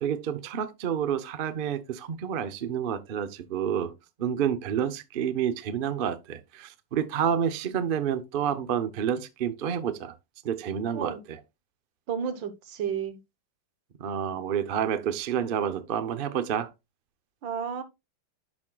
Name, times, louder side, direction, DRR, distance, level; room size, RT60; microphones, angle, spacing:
voice 1, 0.0-3.9 4.2-10.2 10.4-11.4 14.0-16.7, right 8 dB, 70° right, 0.5 m, -29 dB
voice 2, 12.1-13.2 17.4-17.8, right 7 dB, 85° right, 1.7 m, -32 dB
10.5 x 6.2 x 2.3 m
omnidirectional pair, 2.0 m